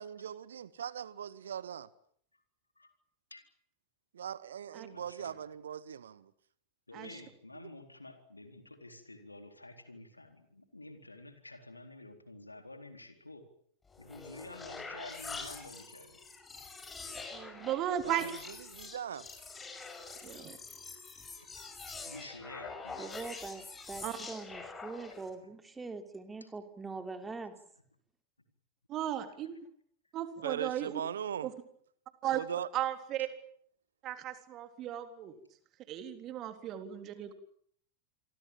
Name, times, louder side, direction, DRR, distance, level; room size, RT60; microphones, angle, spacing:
voice 1, 0.0-1.9 4.1-6.3 18.0-18.4 18.7-19.3 30.4-31.5 32.3-32.7, right 8 dB, 65° right, 1.1 m, -39 dB
voice 2, 4.9-5.5 6.9-13.5 14.0-16.2 21.9-23.1 26.4-26.5 30.6-30.8 33.2-33.3, left 2 dB, 85° left, 4.1 m, -50 dB
sound 1, 13.9-25.3, left 4 dB, 15° left, 5.5 m, -46 dB
voice 3, 17.3-18.3 20.2-20.6 24.0-24.2 28.9-29.7 30.1-31.0 31.4-31.5 32.2-32.4 32.7-33.3 34.0-35.4 35.9-37.3, right 11 dB, 35° right, 3.6 m, -36 dB
voice 4, 23.0-27.5, right 3 dB, 10° right, 3.5 m, -43 dB
28.0 x 23.5 x 7.4 m
figure-of-eight pair, 90°, 0 cm